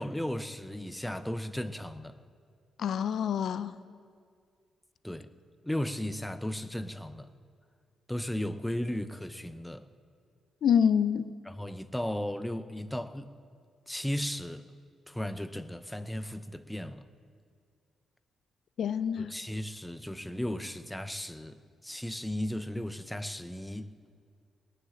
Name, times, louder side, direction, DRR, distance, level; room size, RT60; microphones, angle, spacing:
voice 1, 0.0-2.2 5.0-5.3 5.6-7.3 8.1-9.9 11.4-13.3 13.9-14.6 15.1-17.1 19.2-23.9, left 1 dB, 5° left, 0.6 m, -35 dB
voice 2, 2.8-3.7 10.6-11.3 18.8-19.3, left 8 dB, 65° left, 0.4 m, -26 dB
19.0 x 6.5 x 8.9 m
cardioid pair, 95°, 0 cm